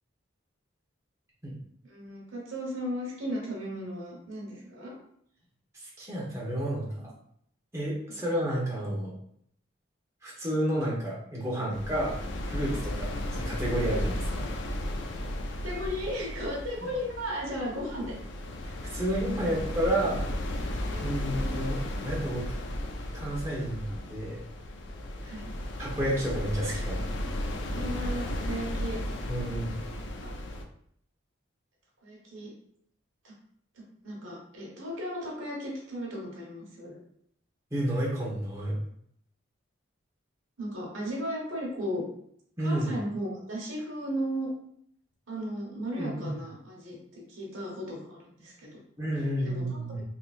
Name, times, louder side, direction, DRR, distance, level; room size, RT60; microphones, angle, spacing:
voice 1, 1.8-4.9 15.6-18.1 18.9-19.0 20.9-21.1 25.2-25.5 27.7-29.0 29.9-30.3 32.0-32.5 33.2-33.3 34.0-37.0 40.6-42.0 42.6-44.5 45.3-48.8 49.4-49.8, equal, 85° right, -3 dB, 1.3 m, -35 dB
voice 2, 6.0-7.1 7.7-9.1 10.2-12.2 12.5-14.5 18.6-20.2 21.0-22.5 23.1-24.4 25.8-27.0 29.3-29.7 37.7-38.7 42.6-42.9 46.0-46.3 49.0-50.0, right 1 dB, 15° right, -5 dB, 1.0 m, -31 dB
sound 1, 11.7-30.6, left 1 dB, 65° left, 0.4 m, -34 dB
3.6 x 2.9 x 2.5 m, 0.68 s
head